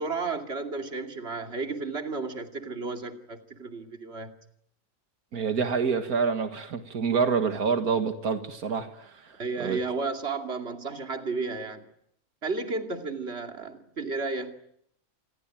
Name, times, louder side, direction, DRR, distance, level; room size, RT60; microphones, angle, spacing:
voice 1, 0.0-4.3 9.4-11.8 12.4-14.5, right 3 dB, 45° right, 5 dB, 2.7 m, -33 dB
voice 2, 5.3-9.3 9.6-9.8, right 5 dB, 85° right, 7 dB, 2.2 m, -27 dB
27.0 x 20.5 x 9.1 m, 0.73 s
omnidirectional pair, 1.5 m